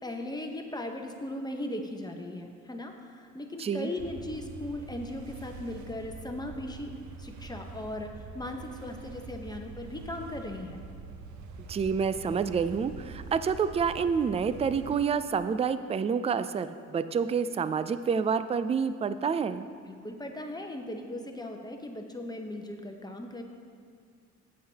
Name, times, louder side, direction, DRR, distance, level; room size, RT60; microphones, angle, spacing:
voice 1, 0.0-6.9 7.2-10.8 19.9-23.4, left 1 dB, 15° left, 3 dB, 0.9 m, -38 dB
sound 1, 4.0-15.0, right 4 dB, 70° right, 0.8 m, -45 dB
voice 2, 11.7-19.6, right 6 dB, 20° right, 12 dB, 0.3 m, -28 dB
13.5 x 8.6 x 2.9 m, 2.2 s
cardioid pair, 90°, 30 cm